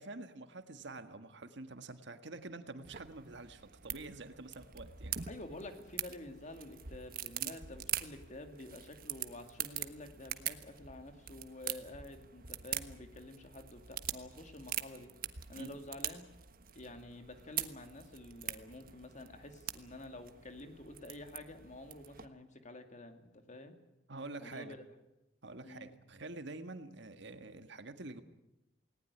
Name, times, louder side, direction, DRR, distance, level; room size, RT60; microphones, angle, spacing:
voice 1, 0.0-5.1 7.4-7.6 15.5-15.8 24.1-24.8 25.4-28.2, right 2 dB, 65° right, 9 dB, 1.7 m, -47 dB
sound 1, 2.8-22.3, right 11 dB, 50° right, 1.3 m, -44 dB
voice 2, 5.3-15.1 15.5-16.3 16.7-23.8 24.4-24.8 25.6-25.9, left 1 dB, 40° left, 7 dB, 2.6 m, -49 dB
19.5 x 19.0 x 9.9 m, 0.94 s
head